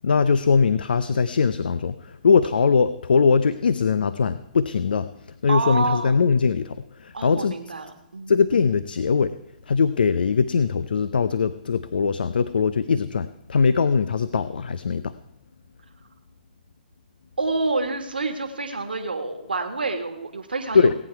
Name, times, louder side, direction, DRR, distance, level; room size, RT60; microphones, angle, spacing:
voice 1, 0.0-7.5 8.3-9.3 9.7-15.1 20.7-20.9, left 5 dB, 75° left, 14 dB, 0.6 m, -21 dB
voice 2, 5.5-6.2 7.1-8.3 17.4-20.9, right 3 dB, 90° right, 5 dB, 1.8 m, -28 dB
18.0 x 9.3 x 4.7 m, 0.89 s
hypercardioid pair, 130°, 5 cm